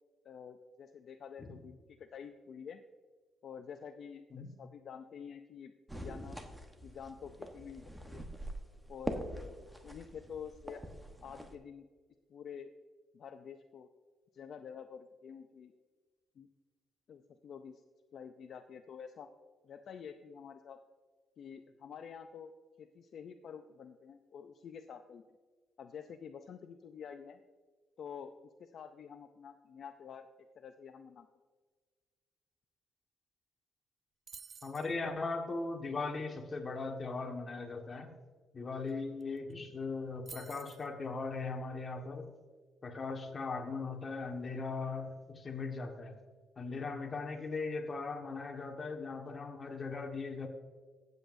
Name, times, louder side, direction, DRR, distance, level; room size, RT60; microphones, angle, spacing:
voice 1, 0.2-2.8 3.4-6.4 6.8-8.2 8.9-9.6 9.8-10.8 11.2-11.9 12.3-12.7 13.1-13.9 14.3-15.7 16.4-16.5 17.1-17.8 18.1-19.3 19.6-20.8 21.4-22.5 22.8-25.2 25.8-27.4 28.0-30.3 30.6-31.3 46.6-46.8, left 7 dB, 60° left, 8 dB, 0.4 m, -48 dB
sound 1, 5.9-11.5, right 1 dB, 10° right, 1.1 m, -44 dB
sound 2, 34.3-34.9 38.9-39.0 39.2-39.5 40.3-40.9, right 5 dB, 40° right, 0.4 m, -51 dB
voice 2, 34.6-38.1 38.5-42.3 42.8-46.1 46.6-50.5, left 3 dB, 35° left, 3 dB, 1.5 m, -39 dB
15.0 x 8.0 x 2.6 m, 1.4 s
cardioid pair, 90°, 0 cm